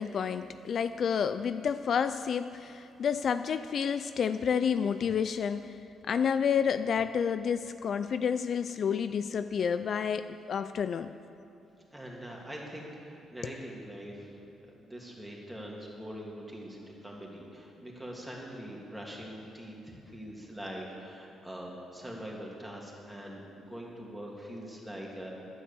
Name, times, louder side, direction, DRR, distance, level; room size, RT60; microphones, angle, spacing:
voice 1, 0.0-11.1, left 7 dB, 55° left, 11 dB, 0.3 m, -30 dB
voice 2, 11.9-14.4 14.7-25.3, equal, 5° right, -3 dB, 2.7 m, -43 dB
10.5 x 9.7 x 7.0 m, 2.7 s
cardioid pair, 90°, 0 cm